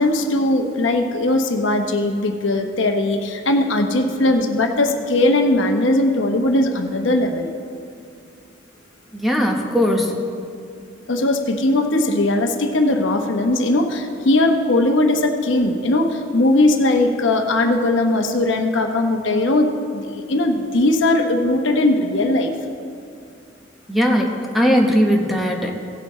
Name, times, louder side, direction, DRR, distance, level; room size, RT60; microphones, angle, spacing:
voice 1, 0.0-7.5 11.1-22.5, left 2 dB, 65° left, 4 dB, 0.9 m, -19 dB
voice 2, 9.1-10.1 23.9-25.7, equal, ahead, 0 dB, 1.0 m, -18 dB
17.0 x 8.1 x 3.1 m, 2.4 s
head